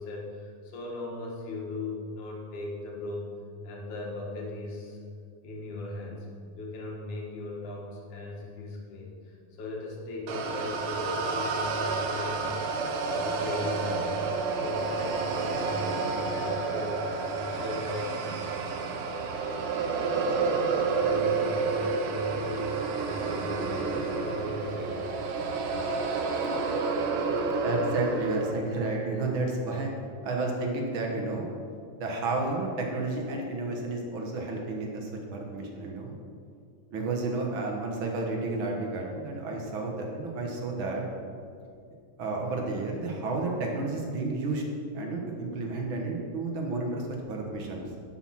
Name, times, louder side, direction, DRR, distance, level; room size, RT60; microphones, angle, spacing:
voice 1, 0.0-3.3 3.6-5.0 5.4-6.3 6.6-12.5 13.1-14.3 14.5-18.2 20.6-25.7 26.4-26.6 27.2-27.6, left 2 dB, 70° left, -2 dB, 3.1 m, -38 dB
sound 1, 10.3-28.5, right 4 dB, 80° right, 2.5 m, -30 dB
voice 2, 27.6-29.9 30.2-31.5 32.0-36.1 36.9-41.0 42.2-44.6 44.9-47.8, right 3 dB, 50° right, 0 dB, 1.7 m, -31 dB
11.5 x 6.8 x 5.9 m, 2.3 s
omnidirectional pair, 3.7 m